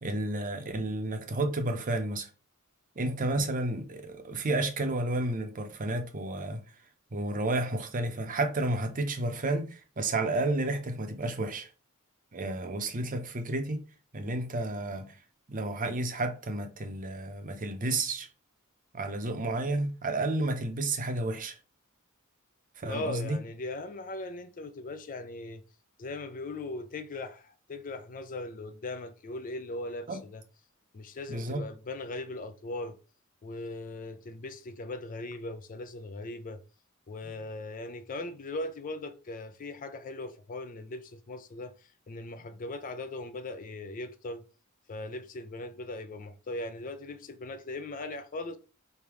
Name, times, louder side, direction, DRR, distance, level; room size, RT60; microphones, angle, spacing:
voice 1, 0.0-2.3 3.0-6.6 7.1-11.7 12.3-13.8 14.1-15.2 15.5-18.3 18.9-21.6 22.8-23.4 30.1-30.2 31.3-31.6, right 2 dB, 40° right, 0.7 m, -31 dB
voice 2, 22.8-25.6 26.0-30.4 30.9-33.0 33.4-36.6 37.1-44.4 44.9-48.6, left 2 dB, 40° left, 0.4 m, -39 dB
3.4 x 2.7 x 4.6 m
head